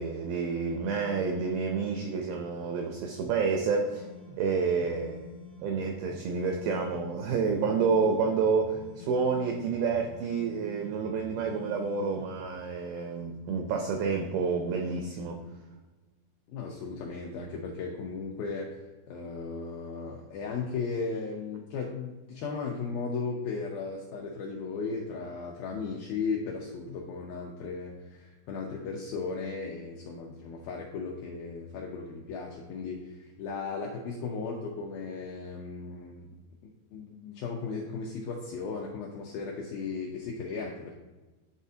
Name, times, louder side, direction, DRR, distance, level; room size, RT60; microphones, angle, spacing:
voice 1, 0.0-4.1 4.4-5.3 5.6-15.4, right 5 dB, 90° right, 3 dB, 2.1 m, -29 dB
sound 1, 3.9-12.5, left 2 dB, 70° left, 1.1 m, -48 dB
voice 2, 16.5-18.7 19.1-36.4 36.9-41.0, left 4 dB, 85° left, -1 dB, 2.1 m, -36 dB
10.5 x 4.2 x 2.7 m, 1.2 s
omnidirectional pair, 5.0 m